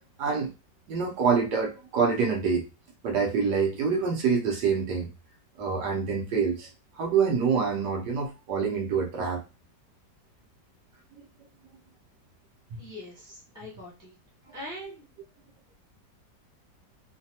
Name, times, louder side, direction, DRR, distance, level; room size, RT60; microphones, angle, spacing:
voice 1, 0.2-0.5 0.9-2.6 3.0-5.1 5.6-6.7 7.0-9.4, right 5 dB, 70° right, 0 dB, 1.2 m, -26 dB
voice 2, 12.8-14.1 14.5-15.1, left 1 dB, 15° left, -5 dB, 0.7 m, -42 dB
3.2 x 2.2 x 2.7 m, 0.29 s
omnidirectional pair, 2.0 m